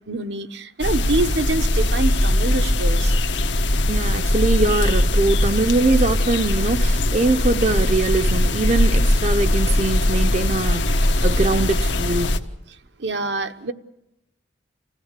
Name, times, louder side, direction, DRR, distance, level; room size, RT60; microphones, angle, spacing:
voice 1, 0.1-3.1 13.0-13.7, right 2 dB, 70° right, 1.1 m, -25 dB
sound 1, 0.8-12.4, left 1 dB, 80° left, 1.5 m, -20 dB
voice 2, 3.9-12.4, right 3 dB, 35° right, 0.7 m, -22 dB
26.5 x 16.0 x 8.3 m
head